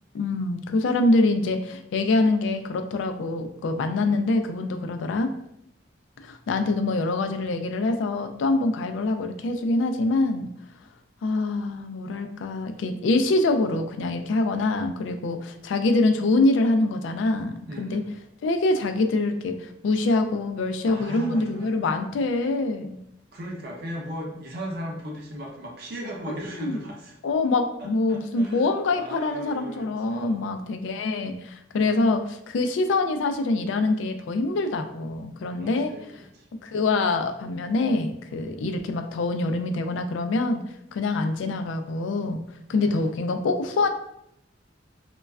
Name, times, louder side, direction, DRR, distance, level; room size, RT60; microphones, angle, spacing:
voice 1, 0.1-5.3 6.2-10.5 11.2-18.0 18.4-23.0 26.6-26.8 27.2-35.9 36.6-40.6 40.9-42.4 42.7-43.9, left 2 dB, 80° left, 6 dB, 0.3 m, -25 dB
voice 2, 17.7-18.1 20.9-21.8 23.3-27.1 27.8-30.5 31.8-32.1 35.6-36.5 42.7-43.1, equal, 60° right, -1 dB, 0.6 m, -37 dB
3.1 x 2.2 x 2.3 m, 0.77 s
head